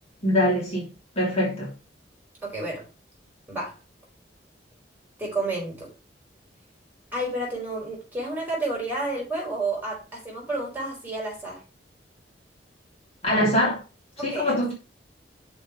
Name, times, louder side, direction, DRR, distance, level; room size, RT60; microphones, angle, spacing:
voice 1, 0.2-0.9 1.2-1.7 13.2-13.8 14.2-14.7, left 1 dB, 35° left, 3.0 m, -23 dB
voice 2, 2.4-2.9 3.5-3.7 5.2-5.9 7.1-11.6 14.2-14.6, right 2 dB, 10° right, 4.6 m, -30 dB
6.4 x 5.2 x 4.9 m
head